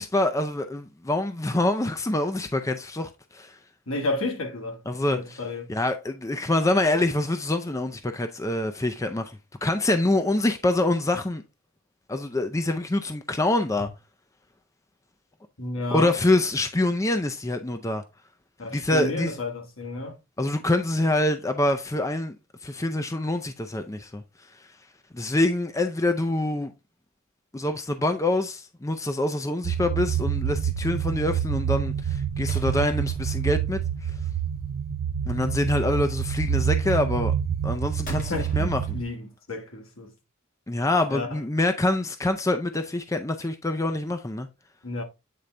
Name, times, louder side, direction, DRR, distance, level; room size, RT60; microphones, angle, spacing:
voice 1, 0.0-3.6 4.9-5.4 5.7-11.4 12.1-13.9 15.9-18.0 18.7-19.3 20.4-22.4 22.6-24.2 25.1-26.7 27.5-34.1 35.3-37.3 37.6-38.8 40.7-44.5, left 1 dB, 15° left, 0.5 m, -25 dB
voice 2, 3.9-4.8 5.1-5.7 15.6-16.1 18.6-20.2 38.1-40.1 41.1-41.4 44.8-45.0, left 2 dB, 70° left, 1.8 m, -31 dB
sound 1, 29.6-39.0, right 8 dB, 75° right, 0.5 m, -27 dB
sound 2, 32.5-33.9 38.0-39.6, left 1 dB, 40° left, 2.1 m, -46 dB
8.5 x 3.9 x 3.2 m
head